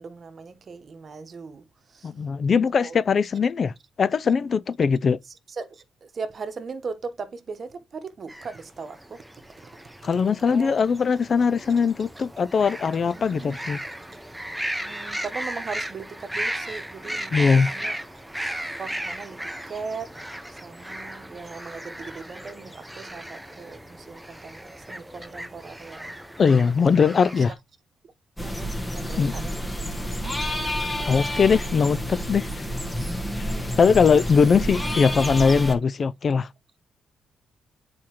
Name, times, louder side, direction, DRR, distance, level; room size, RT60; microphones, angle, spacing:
voice 1, 0.0-2.1 2.7-3.0 5.3-9.2 10.5-10.7 13.0-13.6 14.8-18.0 18.8-20.1 20.5-26.1 26.9-27.0 27.4-27.5 28.4-29.4 31.0-31.1 33.4-34.0, right 4 dB, 45° right, 1.0 m, -38 dB
voice 2, 2.0-3.7 4.0-5.2 10.0-13.8 17.3-17.7 26.4-27.5 29.2-29.3 31.1-32.7 33.8-36.5, left 5 dB, 45° left, 0.3 m, -20 dB
sound 1, 8.3-27.5, right 1 dB, 5° right, 0.8 m, -36 dB
sound 2, 28.4-35.8, equal, 10° left, 1.3 m, -29 dB
8.5 x 4.3 x 3.0 m
cardioid pair, 85°, 0 cm